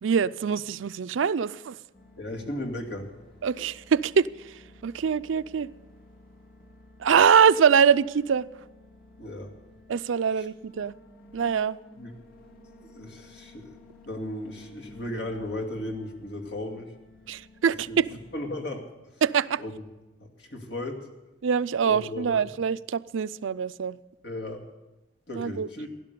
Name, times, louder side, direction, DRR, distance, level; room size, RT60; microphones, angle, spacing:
voice 1, 0.0-1.8 3.4-5.7 7.0-8.5 9.9-10.9 11.3-11.8 17.3-18.1 19.2-19.6 21.4-24.0 25.3-25.7, right 7 dB, 90° right, 0.4 m, -24 dB
sound 1, 1.9-18.4, left 2 dB, 50° left, 2.5 m, -53 dB
voice 2, 2.2-3.1 9.2-9.5 12.0-12.1 12.8-13.8 14.1-16.9 17.9-18.0 18.3-18.9 19.6-19.7 20.2-21.1 21.8-22.4 24.2-24.6 25.3-25.9, left 1 dB, 65° left, 2.4 m, -35 dB
16.5 x 11.5 x 6.8 m
head